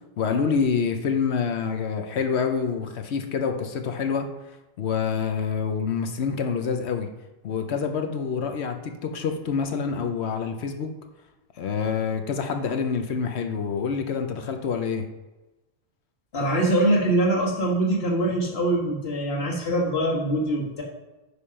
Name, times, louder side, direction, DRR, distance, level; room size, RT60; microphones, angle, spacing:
voice 1, 0.2-4.3 4.8-7.1 7.4-10.9 11.6-15.1, left 6 dB, 85° left, 6 dB, 1.1 m, -27 dB
voice 2, 16.3-20.8, right 1 dB, 65° left, -3 dB, 1.8 m, -23 dB
9.6 x 3.4 x 5.7 m, 1.1 s
omnidirectional pair, 1.1 m